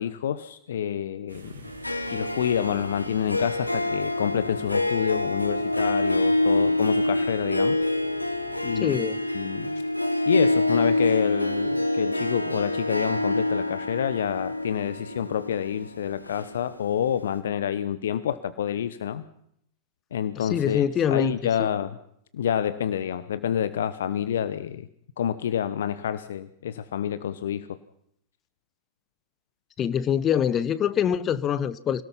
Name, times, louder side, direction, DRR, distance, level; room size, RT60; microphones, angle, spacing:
voice 1, 0.0-1.5 2.1-7.8 8.6-9.0 9.3-9.8 10.3-19.2 20.1-22.0 22.3-24.9 25.2-27.7, left 9 dB, 60° left, 15 dB, 0.9 m, -28 dB
sound 1, 1.3-8.9, right 4 dB, 75° right, 3.5 m, -48 dB
Harp, 1.6-17.0, left 1 dB, 85° left, 1.4 m, -26 dB
voice 2, 8.8-9.2 20.4-21.7 29.8-32.0, left 9 dB, 30° left, 16 dB, 1.0 m, -25 dB
27.0 x 18.0 x 5.7 m, 0.72 s
figure-of-eight pair, 90°, 0 cm